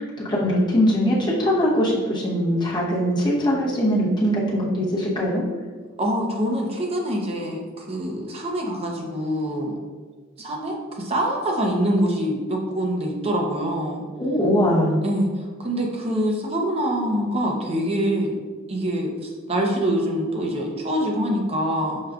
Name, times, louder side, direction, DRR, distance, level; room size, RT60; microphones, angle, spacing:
voice 1, 0.3-5.4 14.2-15.0, equal, 20° left, -6 dB, 0.9 m, -21 dB
voice 2, 6.0-9.8 10.4-14.0 15.0-18.4 18.7-22.0, equal, 30° right, 0 dB, 0.5 m, -25 dB
6.3 x 2.3 x 2.3 m, 1.5 s
head